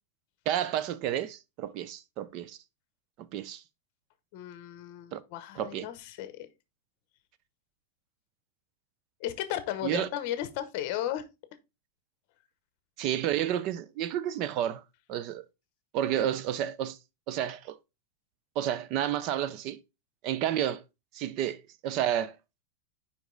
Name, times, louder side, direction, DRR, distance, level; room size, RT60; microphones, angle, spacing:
voice 1, 0.5-2.6 3.2-3.6 5.1-5.2 5.6-5.9 9.8-10.1 13.0-14.8 15.1-15.4 15.9-17.0 17.3-17.8 18.6-19.8 20.2-20.8 21.1-22.4, right 11 dB, 30° right, 0.4 m, -30 dB
voice 2, 4.3-6.5 9.2-11.2, left 12 dB, 40° left, 0.8 m, -35 dB
5.2 x 5.0 x 3.8 m
supercardioid pair, 180°, 0 cm